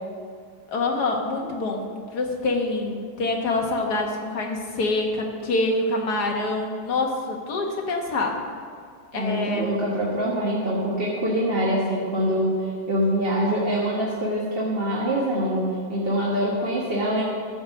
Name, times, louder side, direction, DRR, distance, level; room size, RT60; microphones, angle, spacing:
voice 1, 0.7-8.4 9.1-9.7, left 2 dB, 85° left, 2 dB, 1.9 m, -26 dB
voice 2, 9.1-17.2, equal, 40° right, -6 dB, 1.6 m, -24 dB
13.5 x 5.1 x 7.2 m, 2.1 s
omnidirectional pair, 1.7 m